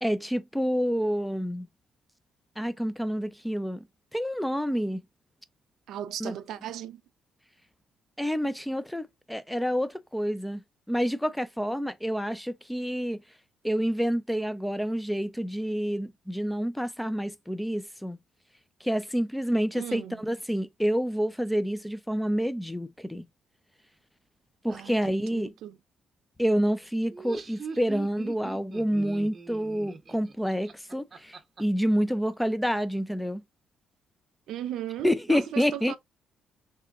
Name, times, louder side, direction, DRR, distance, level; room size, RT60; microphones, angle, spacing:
voice 1, 0.0-1.7 2.6-3.9 4.1-5.0 6.2-6.4 8.2-13.2 13.6-18.2 18.8-23.3 24.6-25.5 26.4-33.4 35.0-35.9, equal, 5° left, 0.4 m, -28 dB
voice 2, 5.9-7.0 19.8-20.2 24.7-24.9 25.3-25.8 34.5-36.0, right 11 dB, 80° right, 0.4 m, -36 dB
Laughter, 27.0-31.6, right 4 dB, 40° right, 0.8 m, -41 dB
2.9 x 2.2 x 3.5 m
cardioid pair, 90°, 0 cm